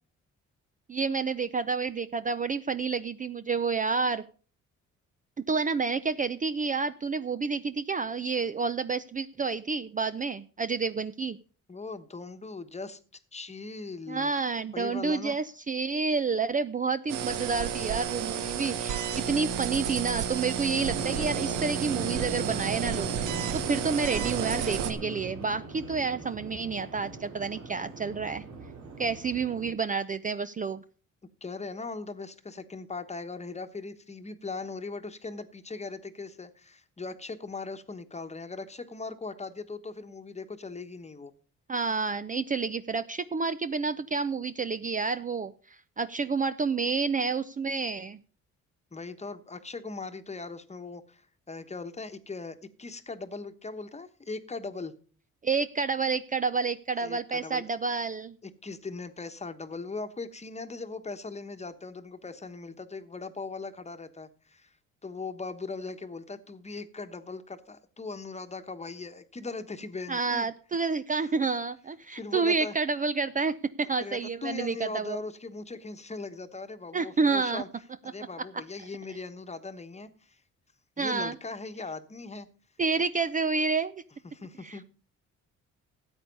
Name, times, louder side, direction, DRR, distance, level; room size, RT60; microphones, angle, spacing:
voice 1, 0.9-4.2 5.5-11.4 14.1-28.4 29.0-30.8 41.7-48.2 55.4-58.4 70.1-75.2 76.9-77.6 81.0-81.3 82.8-83.9 84.6-84.9, right 4 dB, 25° right, 12 dB, 0.5 m, -29 dB
voice 2, 11.7-13.0 13.3-14.4 14.7-15.4 31.4-41.3 48.9-54.9 57.0-57.6 58.4-64.7 65.0-70.5 71.2-71.3 72.1-72.7 73.8-77.7 78.0-80.4 81.0-82.5 84.2-84.8, left 3 dB, 20° left, 9 dB, 1.2 m, -39 dB
sound 1, 17.1-24.9, right 8 dB, 85° right, 1.2 m, -32 dB
sound 2, 20.8-29.7, right 3 dB, 65° right, 2.6 m, -39 dB
13.5 x 8.3 x 5.3 m, 0.41 s
cardioid pair, 90°, 30 cm